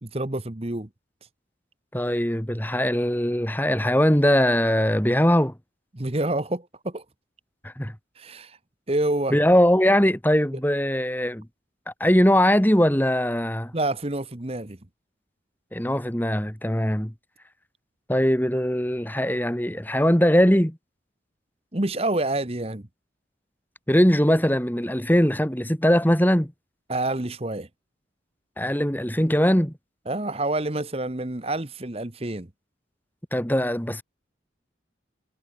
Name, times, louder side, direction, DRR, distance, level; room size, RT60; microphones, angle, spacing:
voice 1, 0.0-0.9 5.9-7.0 8.2-8.6 8.9-9.4 13.7-14.8 21.7-22.8 26.9-27.7 30.1-32.5, right 2 dB, 30° right, 1.2 m, -27 dB
voice 2, 1.9-5.5 7.6-7.9 9.3-11.5 12.0-13.7 15.7-17.1 18.1-20.8 23.9-26.5 28.6-29.7 33.3-34.0, equal, 10° left, 1.9 m, -21 dB
head